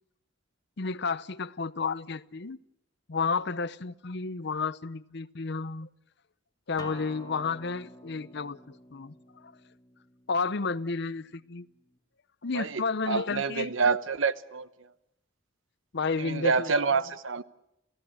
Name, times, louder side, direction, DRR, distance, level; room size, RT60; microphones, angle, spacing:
voice 1, 0.8-2.6 3.1-5.9 6.7-9.5 10.3-11.7 12.4-13.7 15.9-16.7, left 4 dB, 60° left, 16 dB, 0.8 m, -32 dB
Acoustic guitar, 6.8-12.0, left 1 dB, 20° left, 2.6 m, -50 dB
voice 2, 12.5-14.7 16.2-17.4, right 4 dB, 80° right, 14 dB, 1.0 m, -27 dB
30.0 x 16.0 x 8.8 m, 0.88 s
head